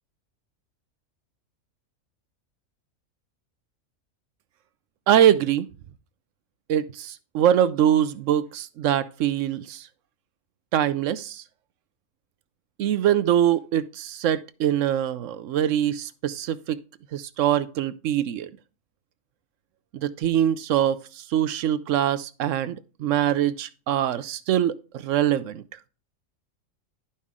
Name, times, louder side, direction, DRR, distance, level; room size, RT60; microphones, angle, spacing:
voice 1, 5.1-5.7 6.7-9.9 10.7-11.4 12.8-16.8 17.1-18.5 19.9-25.6, right 10 dB, 70° right, 0.9 m, -23 dB
11.5 x 5.4 x 3.6 m
omnidirectional pair, 1.4 m